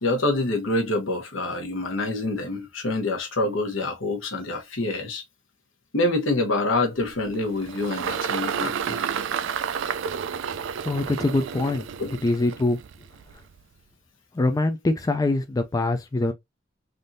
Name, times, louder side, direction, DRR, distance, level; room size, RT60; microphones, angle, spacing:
voice 1, 0.0-5.2 5.9-9.0 12.0-12.1, left 2 dB, 70° left, 1.0 m, -26 dB
Engine, 7.0-13.6, right 7 dB, 65° right, 0.3 m, -31 dB
voice 2, 10.9-11.9 12.2-12.8 14.4-16.3, left 2 dB, 20° left, 0.3 m, -23 dB
3.5 x 2.6 x 2.6 m
head